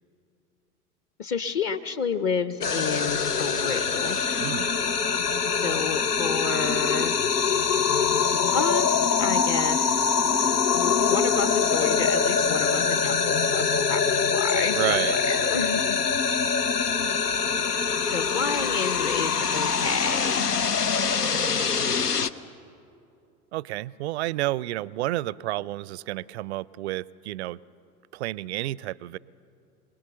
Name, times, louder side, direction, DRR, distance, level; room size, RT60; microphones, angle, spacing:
voice 1, 1.2-4.2 5.5-7.2 8.5-9.9 10.7-16.0 17.6-20.7, left 5 dB, 30° left, 12 dB, 0.8 m, -30 dB
sound 1, 2.6-22.3, left 6 dB, 85° left, 0.7 m, -24 dB
voice 2, 4.4-4.7 14.7-15.2 23.5-27.6 28.1-29.2, right 16 dB, 50° right, 23 dB, 0.5 m, -30 dB
27.0 x 19.5 x 7.0 m, 2.6 s
figure-of-eight pair, 85°, 45 cm